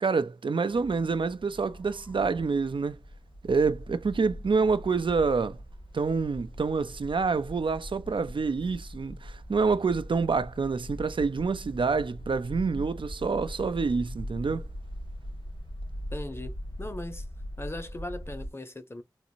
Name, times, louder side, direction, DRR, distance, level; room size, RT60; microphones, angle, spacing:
voice 1, 0.0-3.0 3.4-5.6 5.9-14.6, right 4 dB, 85° right, 0.5 m, -27 dB
sound 1, 0.7-18.5, equal, 70° left, 1.9 m, -41 dB
voice 2, 16.1-17.2 17.6-19.0, left 1 dB, 30° left, 0.8 m, -38 dB
4.0 x 2.5 x 2.7 m
wide cardioid pair, 60°, 8 cm